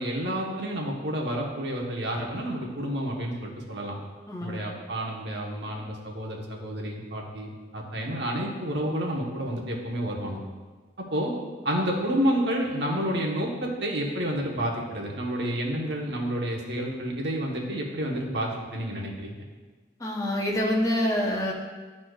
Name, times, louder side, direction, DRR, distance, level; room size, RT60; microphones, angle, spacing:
voice 1, 0.0-4.0 4.4-10.4 11.0-11.3 11.6-19.3, equal, 65° right, 0 dB, 1.0 m, -30 dB
voice 2, 4.3-4.6 20.0-21.5, left 1 dB, 20° left, -2 dB, 0.7 m, -26 dB
11.5 x 4.2 x 2.3 m, 1.4 s
head